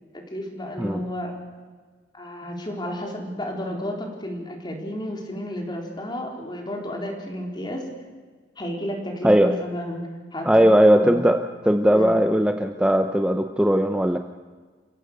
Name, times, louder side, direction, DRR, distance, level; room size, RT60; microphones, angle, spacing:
voice 1, 0.3-1.3 2.1-7.9 8.6-10.0 10.3-10.7 11.0-11.2 11.9-12.2, equal, 25° left, 1 dB, 4.1 m, -32 dB
voice 2, 9.2-9.5 10.4-14.2, equal, 5° right, 6 dB, 0.7 m, -18 dB
30.0 x 16.0 x 6.7 m, 1.5 s
head